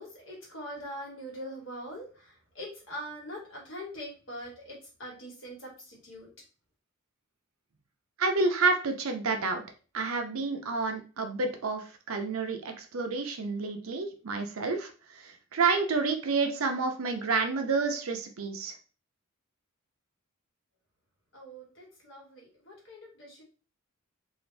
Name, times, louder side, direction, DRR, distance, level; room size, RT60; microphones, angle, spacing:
voice 1, 0.0-6.3 21.3-23.4, equal, 60° left, -3 dB, 1.5 m, -43 dB
voice 2, 8.2-9.6 9.9-18.7, right 4 dB, 80° right, 5 dB, 0.6 m, -29 dB
2.8 x 2.5 x 3.3 m, 0.36 s
head